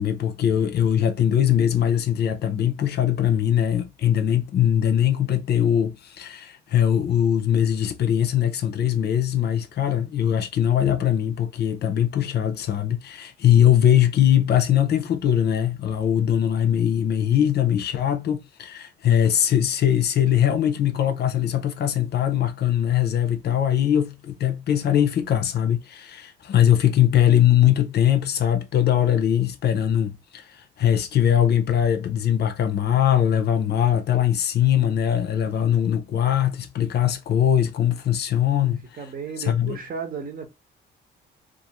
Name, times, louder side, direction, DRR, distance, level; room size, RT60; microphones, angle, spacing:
voice 1, 0.0-38.8 39.4-39.8, left 10 dB, 55° left, 0.5 m, -21 dB
voice 2, 39.0-40.5, right 5 dB, 45° right, 0.9 m, -34 dB
2.4 x 2.4 x 2.9 m
cardioid pair, 90°, 20 cm